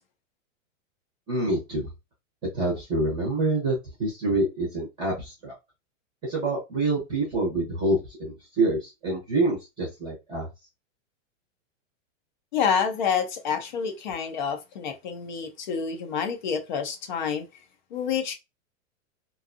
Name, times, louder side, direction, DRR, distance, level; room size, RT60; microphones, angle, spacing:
voice 1, 1.3-1.9 2.5-5.5 6.2-10.5, right 2 dB, 10° right, 0.7 m, -26 dB
voice 2, 12.5-17.5 17.9-18.3, left 7 dB, 40° left, 0.5 m, -28 dB
2.5 x 2.3 x 2.5 m
supercardioid pair, 175°, 38 cm